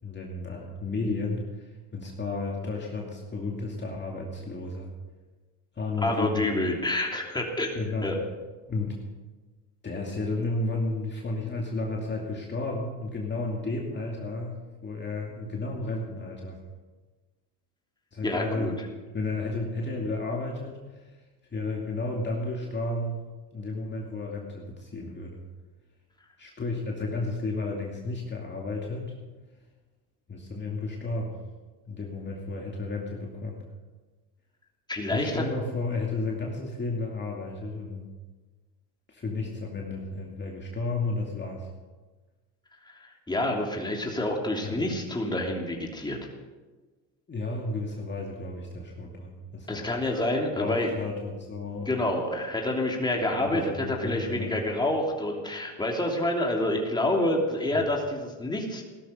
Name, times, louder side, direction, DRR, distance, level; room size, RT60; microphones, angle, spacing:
voice 1, 0.0-4.9 5.7-6.5 7.7-8.1 8.7-9.0 9.8-16.6 18.1-18.8 19.1-21.2 21.5-23.2 23.5-25.4 26.4-29.2 30.3-31.3 31.9-33.6 35.1-38.1 39.1-41.7 44.6-44.9 47.3-49.9 50.4-51.9 53.4-54.5, left 3 dB, 25° left, -1 dB, 2.5 m, -32 dB
voice 2, 6.0-7.7 8.0-8.2 18.2-18.7 34.9-35.4 42.9-46.2 49.7-50.9 51.9-58.9, left 1 dB, 10° left, 0 dB, 3.0 m, -28 dB
16.5 x 13.0 x 5.2 m, 1.3 s
supercardioid pair, 100°, 39 cm